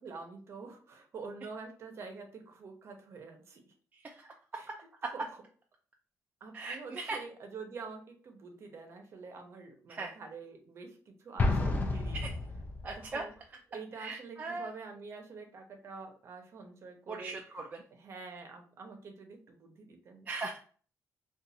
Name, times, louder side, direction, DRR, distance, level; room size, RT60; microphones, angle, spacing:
voice 1, 0.0-3.7 4.5-5.4 6.4-12.3 12.9-13.3 13.7-17.6 17.9-20.3, right 4 dB, 50° right, 4 dB, 0.8 m, -47 dB
voice 2, 6.5-7.2 9.9-10.1 12.1-12.3 12.8-13.2 14.0-14.7 17.1-17.7 20.3-20.6, right 3 dB, 25° right, 1 dB, 0.4 m, -39 dB
Explosion, 11.4-13.1, left 2 dB, 30° left, 0.5 m, -31 dB
2.6 x 2.4 x 4.0 m, 0.44 s
cardioid pair, 135°, 6 cm